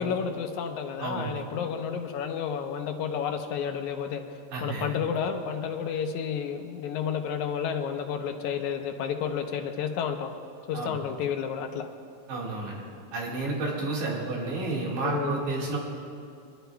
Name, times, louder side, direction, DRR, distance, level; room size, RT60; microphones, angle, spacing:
voice 1, 0.0-10.3 10.7-11.9 15.0-15.4, left 7 dB, 85° left, 5 dB, 2.2 m, -31 dB
voice 2, 1.0-1.3 4.5-4.9 10.7-10.9 12.3-12.8 13.1-15.8, right 3 dB, 90° right, -3 dB, 3.3 m, -31 dB
24.5 x 11.5 x 2.3 m, 2.5 s
omnidirectional pair, 3.4 m